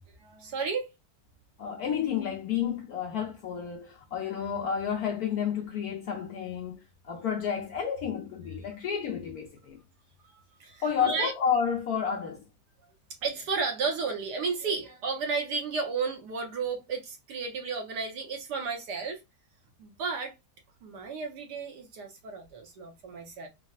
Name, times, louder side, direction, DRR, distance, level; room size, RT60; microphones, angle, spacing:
voice 1, 0.2-0.9 10.2-11.3 13.2-19.2 19.8-20.3 20.8-23.5, right 5 dB, 65° right, 1.2 m, -33 dB
voice 2, 1.6-9.8 10.8-12.4, left 7 dB, 65° left, 1.0 m, -31 dB
4.0 x 2.0 x 2.2 m
omnidirectional pair, 2.1 m